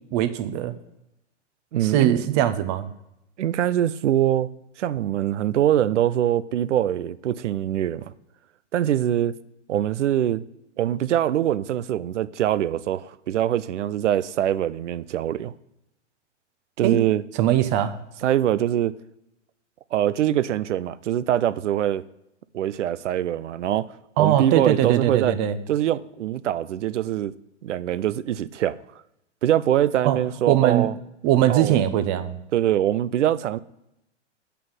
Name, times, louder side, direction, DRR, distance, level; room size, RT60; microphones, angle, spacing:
voice 1, 0.1-0.7 1.8-2.9 16.8-17.0 17.4-18.0 24.2-25.6 30.0-30.2 30.5-30.9 31.2-32.4, right 12 dB, 35° right, 0.8 m, -21 dB
voice 2, 1.7-2.5 3.4-4.5 4.8-8.1 8.7-9.4 9.7-10.4 10.8-15.5 16.8-17.2 18.2-18.9 19.9-22.0 22.5-23.9 24.2-25.4 25.7-27.3 27.6-28.8 29.4-30.9 31.5-31.8 32.5-33.6, right 11 dB, 75° right, 0.6 m, -23 dB
8.4 x 5.6 x 7.8 m
hypercardioid pair, 115°, 36 cm